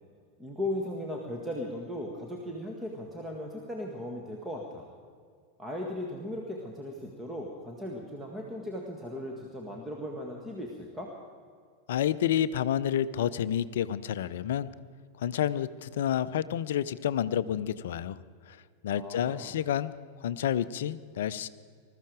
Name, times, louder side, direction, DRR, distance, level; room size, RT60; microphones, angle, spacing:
voice 1, 0.4-4.9 5.6-11.1 18.9-19.5, left 1 dB, 10° right, 1 dB, 1.8 m, -37 dB
voice 2, 11.9-14.7 15.2-18.2 18.5-18.6 18.8-20.0 20.2-21.5, left 10 dB, 60° left, 15 dB, 0.5 m, -29 dB
20.5 x 13.5 x 5.0 m, 2.1 s
figure-of-eight pair, 90°, 0 cm